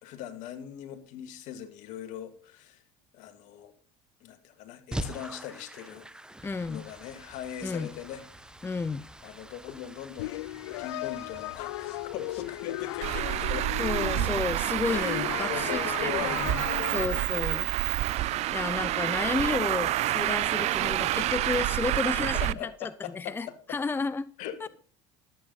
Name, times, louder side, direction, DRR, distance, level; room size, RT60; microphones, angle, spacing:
voice 1, 0.0-2.8 3.1-3.7 4.2-6.1 6.7-8.5 9.2-10.4 10.8-13.7 14.8-16.6 16.9-17.3 21.2-21.3 22.2-23.8 24.4-24.7, left 10 dB, 65° left, 9 dB, 2.1 m, -40 dB
sound 1, 4.9-22.0, right 1 dB, 5° right, 1.1 m, -46 dB
voice 2, 6.4-6.8 7.6-7.9 8.6-9.0 13.8-16.5 16.9-18.0 18.5-24.3 24.6-24.7, left 4 dB, 15° left, 16 dB, 0.6 m, -32 dB
sound 2, 10.2-17.2, left 19 dB, 85° left, 0.4 m, -36 dB
Traffic noise roadway noise, 13.0-22.5, right 15 dB, 55° right, 0.5 m, -28 dB
12.5 x 8.8 x 4.0 m, 0.43 s
supercardioid pair, 85°, 14 cm